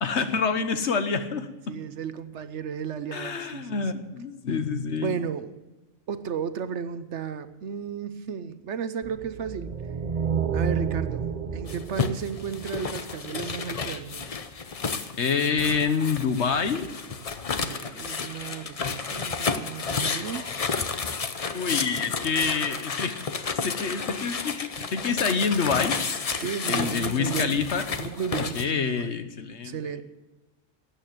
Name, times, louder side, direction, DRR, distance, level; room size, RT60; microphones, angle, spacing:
voice 1, 0.0-1.8 3.1-5.2 15.2-16.9 21.5-23.2 23.5-26.0 26.7-27.9 28.4-29.8, left 5 dB, 60° left, 9 dB, 1.3 m, -27 dB
voice 2, 1.7-4.0 5.0-5.5 6.1-9.7 10.5-14.3 17.6-20.5 26.4-27.6 28.0-29.2 29.6-30.0, right 7 dB, 65° right, 12 dB, 1.0 m, -34 dB
sound 1, 9.0-13.4, right 6 dB, 40° right, 0.8 m, -30 dB
sound 2, 11.7-28.7, left 5 dB, 35° left, 0.6 m, -31 dB
13.0 x 9.1 x 8.7 m, 1.1 s
omnidirectional pair, 1.3 m